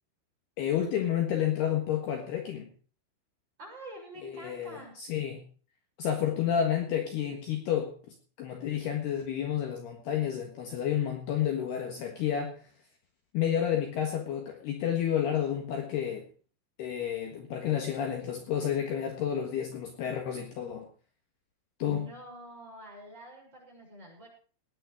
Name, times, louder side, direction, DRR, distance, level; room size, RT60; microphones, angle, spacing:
voice 1, 0.6-2.7 4.2-5.4 6.0-7.9 8.4-12.6 13.3-16.3 16.8-20.9 21.8-22.0, left 9 dB, 65° left, 3 dB, 3.2 m, -30 dB
voice 2, 3.6-5.0 21.8-24.3, equal, 20° right, -2 dB, 7.1 m, -46 dB
19.0 x 9.6 x 5.0 m, 0.40 s
omnidirectional pair, 5.8 m